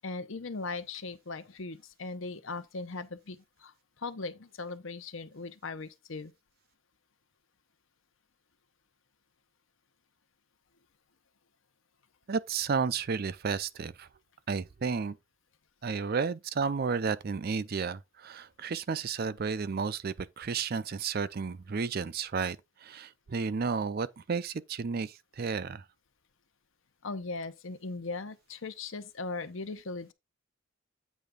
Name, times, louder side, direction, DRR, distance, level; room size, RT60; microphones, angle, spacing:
voice 1, 0.0-6.3 27.0-30.1, left 3 dB, 65° left, 0.8 m, -39 dB
voice 2, 12.3-14.1 14.5-15.2 15.8-25.9, right 5 dB, 45° right, 0.4 m, -32 dB
8.4 x 3.3 x 5.2 m
head